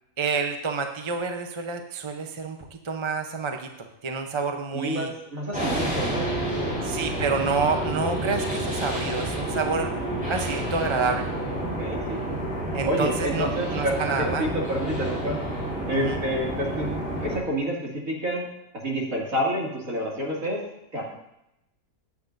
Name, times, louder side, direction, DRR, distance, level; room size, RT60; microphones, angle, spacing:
voice 1, 0.2-2.6 2.8-5.1 6.8-9.9 10.3-11.3 12.7-14.5 15.9-16.2, right 4 dB, 25° right, 5 dB, 0.6 m, -28 dB
voice 2, 4.7-6.9 7.7-7.8 11.6-12.3 12.9-15.4 15.9-16.9 17.2-18.5 18.8-20.6 20.9-21.0, equal, 65° right, -3 dB, 2.9 m, -29 dB
sound 1, 5.5-17.4, right 1 dB, 5° right, 4.6 m, -29 dB
15.0 x 9.6 x 2.7 m, 0.86 s
omnidirectional pair, 1.6 m